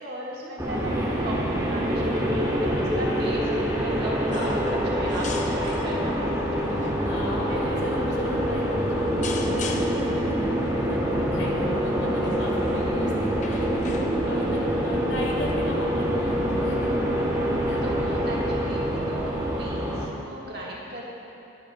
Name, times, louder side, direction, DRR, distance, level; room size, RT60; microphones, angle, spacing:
voice 1, 0.0-7.8 8.1-8.2 14.2-14.6 17.4-21.1, right 1 dB, 55° right, -4 dB, 1.5 m, -37 dB
sound 1, 0.6-20.1, equal, 15° right, 1.0 m, -25 dB
sound 2, 4.3-4.8 5.1-5.9 6.6-7.0 7.8-8.0 9.2-10.1 12.2-12.6 13.3-14.4 15.5-15.6, left 4 dB, 35° left, 0.5 m, -38 dB
voice 2, 7.0-13.9 14.3-17.0 17.7-17.8, left 1 dB, 60° left, -1 dB, 1.4 m, -36 dB
11.5 x 11.0 x 2.2 m, 2.8 s
head